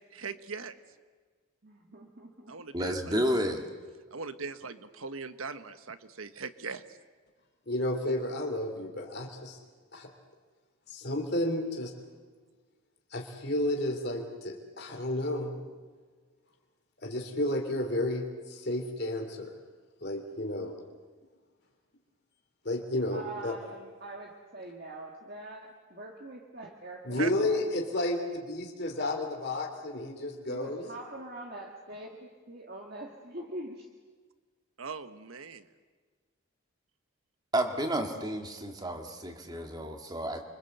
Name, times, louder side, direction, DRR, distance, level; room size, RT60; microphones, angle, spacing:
voice 1, 0.1-0.8 2.5-3.1 4.1-7.0 27.2-27.3 34.8-35.6, right 5 dB, 80° right, 10 dB, 1.4 m, -40 dB
voice 2, 1.6-2.6 23.1-27.6 30.5-33.9, right 1 dB, 45° right, 1 dB, 1.9 m, -44 dB
voice 3, 2.7-3.6 37.5-40.4, equal, 20° right, 4 dB, 2.3 m, -31 dB
voice 4, 7.7-9.6 9.9-10.1 10.9-11.9 13.1-15.6 17.0-19.6 20.0-20.7 22.6-23.6 27.0-30.8, left 1 dB, 50° left, 1 dB, 3.2 m, -32 dB
29.0 x 24.5 x 8.1 m, 1.5 s
head